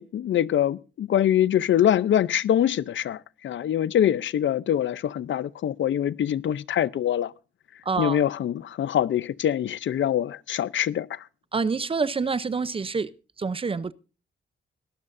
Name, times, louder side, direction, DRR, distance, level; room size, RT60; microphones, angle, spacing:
voice 1, 0.0-7.3 8.0-11.2, left 10 dB, 70° left, 0.6 m, -24 dB
voice 2, 7.8-8.2 11.5-13.1 13.4-13.9, right 4 dB, 25° right, 0.7 m, -27 dB
22.0 x 12.0 x 2.6 m
wide cardioid pair, 135°, 20 cm